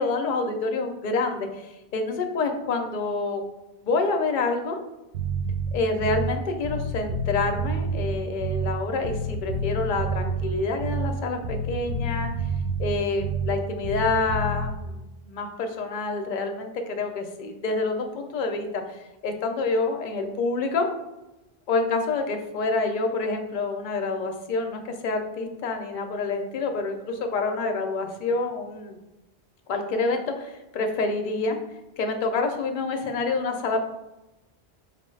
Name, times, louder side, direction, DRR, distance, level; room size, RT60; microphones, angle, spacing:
voice 1, 0.0-3.4 3.8-4.8 5.7-12.3 12.8-20.9 21.7-29.0 29.7-31.6 32.0-33.8, left 3 dB, 55° left, 5 dB, 0.6 m, -27 dB
Bass guitar, 5.1-6.4 6.6-8.8 9.0-11.2 11.4-13.6 13.8-14.7, right 2 dB, 85° right, 0.9 m, -28 dB
5.0 x 2.2 x 3.1 m, 0.99 s
omnidirectional pair, 1.1 m